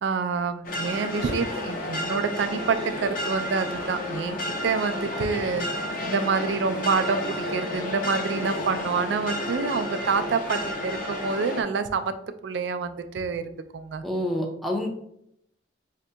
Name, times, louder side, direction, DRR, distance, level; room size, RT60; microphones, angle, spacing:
voice 1, 0.0-12.1 12.4-14.0, right 5 dB, 65° right, 10 dB, 0.3 m, -27 dB
sound 1, 0.6-11.6, left 1 dB, 45° left, 0.6 m, -31 dB
voice 2, 14.0-14.9, left 1 dB, ahead, 0 dB, 0.4 m, -27 dB
5.0 x 2.7 x 2.2 m, 0.74 s
head